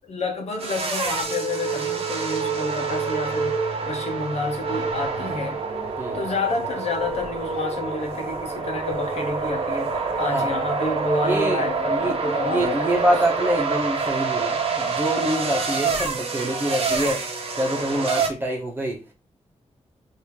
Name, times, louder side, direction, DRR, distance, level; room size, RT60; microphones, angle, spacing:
voice 1, 0.1-5.6 6.1-13.1, left 3 dB, 65° left, 1.0 m, -29 dB
sound 1, 0.6-18.3, right 4 dB, 55° right, 0.8 m, -27 dB
voice 2, 10.3-10.6 11.2-11.6 11.9-17.2 17.6-19.0, right 1 dB, 20° right, 1.2 m, -25 dB
3.3 x 2.8 x 4.5 m
wide cardioid pair, 170°, 12 cm